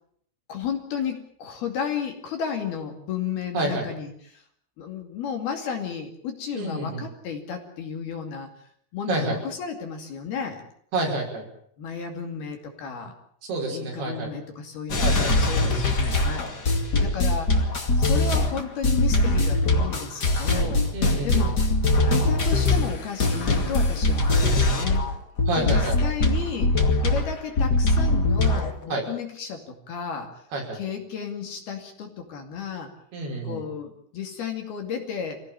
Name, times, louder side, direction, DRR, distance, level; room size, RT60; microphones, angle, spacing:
voice 1, 0.5-4.4 4.8-8.5 8.9-10.6 11.8-13.1 13.7-17.5 17.9-20.8 21.2-21.6 22.1-25.1 25.6-30.3 30.7-32.9 33.4-35.4, left 7 dB, 55° left, 4 dB, 4.0 m, -33 dB
voice 2, 3.5-3.9 6.6-7.1 9.1-9.4 10.9-11.5 13.5-14.3 15.0-15.4 20.9-21.5 25.5-26.0 28.9-29.0 30.5-30.8 33.1-33.6, right 2 dB, 50° right, 1 dB, 7.1 m, -28 dB
sound 1, 14.9-25.1 25.4-28.7, left 2 dB, 35° left, 1.6 m, -22 dB
26.5 x 17.0 x 8.9 m, 0.65 s
omnidirectional pair, 5.7 m